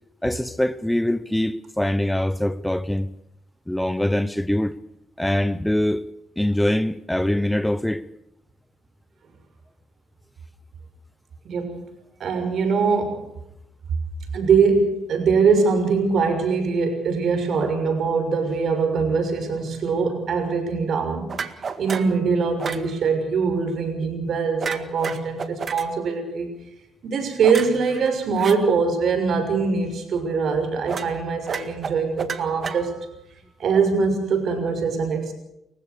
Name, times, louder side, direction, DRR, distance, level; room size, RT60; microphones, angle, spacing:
voice 1, 0.2-3.1 3.7-4.7 5.2-6.1 6.4-8.1, left 1 dB, 5° left, 15 dB, 0.9 m, -23 dB
voice 2, 11.4-11.9 12.2-13.3 14.3-21.4 21.8-26.5 27.0-32.9 33.6-35.3, right 5 dB, 60° right, 6 dB, 6.4 m, -22 dB
sound 1, 21.3-22.2 22.6-22.9 24.6-25.9 27.4-28.6 30.9-31.2 31.5-33.2, right 5 dB, 45° right, 1.9 m, -31 dB
29.5 x 15.5 x 6.8 m, 0.82 s
cardioid pair, 90°, 0 cm